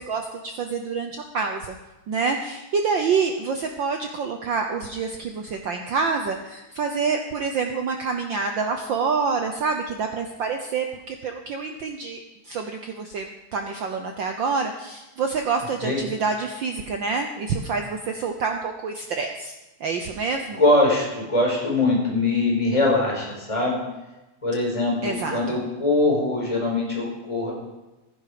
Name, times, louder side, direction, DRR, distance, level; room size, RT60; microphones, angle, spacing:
voice 1, 0.0-1.7 2.1-19.5 19.8-20.6 25.0-25.6, right 5 dB, 85° right, 4 dB, 1.0 m, -27 dB
voice 2, 20.6-23.8 24.4-27.5, left 2 dB, 10° left, -3 dB, 4.7 m, -22 dB
15.5 x 10.5 x 5.0 m, 1.0 s
omnidirectional pair, 3.3 m